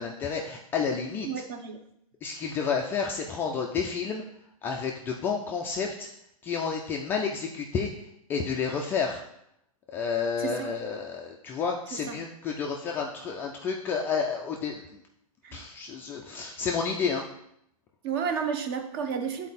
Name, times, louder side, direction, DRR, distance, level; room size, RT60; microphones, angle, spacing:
voice 1, 0.0-1.4 2.2-4.2 4.6-6.1 6.4-9.2 9.9-15.0 15.5-17.2, left 5 dB, 10° left, 0 dB, 0.3 m, -30 dB
voice 2, 1.2-1.8 10.4-10.7 12.1-12.2 15.4-15.6 18.0-19.5, right 6 dB, 35° right, 7 dB, 0.9 m, -31 dB
9.4 x 4.2 x 4.1 m, 0.77 s
hypercardioid pair, 155°, 19 cm